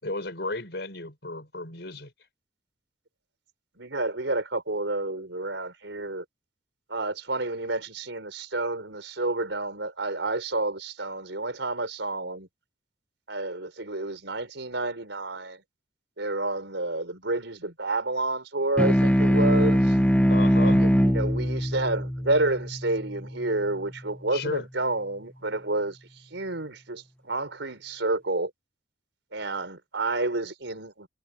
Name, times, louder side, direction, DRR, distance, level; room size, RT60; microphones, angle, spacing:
voice 1, 0.0-2.1 20.3-20.9 24.3-24.7, left 2 dB, 65° left, 6.7 m, -33 dB
voice 2, 3.8-6.2 6.9-12.5 13.3-15.6 16.2-20.0 20.6-26.0 26.3-28.5 29.3-31.1, right 2 dB, 85° right, 4.5 m, -30 dB
sound 1, 18.8-23.6, equal, 5° left, 2.2 m, -22 dB
head